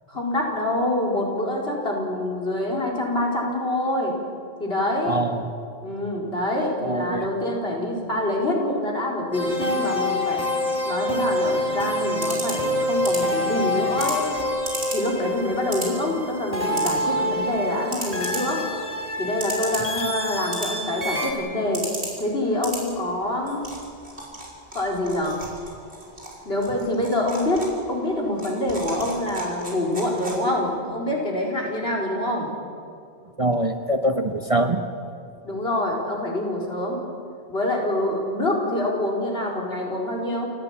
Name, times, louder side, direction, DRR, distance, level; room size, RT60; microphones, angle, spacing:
voice 1, 0.1-4.2 4.6-5.2 5.8-10.4 10.8-14.3 14.9-18.7 19.2-21.8 22.2-23.7 24.7-25.4 26.4-32.5 35.4-37.0 37.5-40.5, left 1 dB, 70° left, -2 dB, 4.6 m, -26 dB
voice 2, 5.1-5.4 6.8-7.3 33.4-34.8, right 1 dB, 35° right, 6 dB, 1.1 m, -23 dB
sound 1, 9.3-21.3, left 1 dB, 35° left, 3.3 m, -26 dB
sound 2, 11.4-30.7, right 1 dB, 90° right, 5.0 m, -37 dB
28.5 x 15.5 x 8.9 m, 2.4 s
omnidirectional pair, 1.1 m